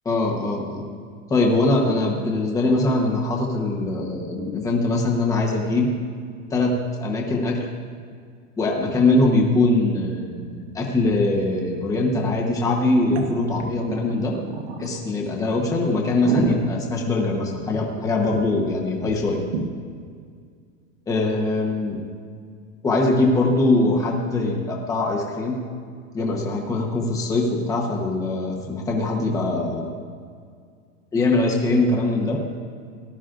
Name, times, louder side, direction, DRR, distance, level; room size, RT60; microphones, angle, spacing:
voice 1, 0.0-0.8 1.3-5.9 6.5-7.7 8.6-14.3 14.8-19.4 21.1-22.0 22.8-25.6 26.1-29.9 31.1-32.4, left 2 dB, 10° left, -1 dB, 1.0 m, -22 dB
sound 1, 11.1-11.2 11.4-11.5 12.1-12.5 13.0-15.0 15.5-15.6 16.0-18.0 18.3-18.4 18.7-18.8 19.1-19.2 19.5-19.7, right 4 dB, 55° right, 1.4 m, -29 dB
18.5 x 11.5 x 2.5 m, 2.1 s
supercardioid pair, 180°, 39 cm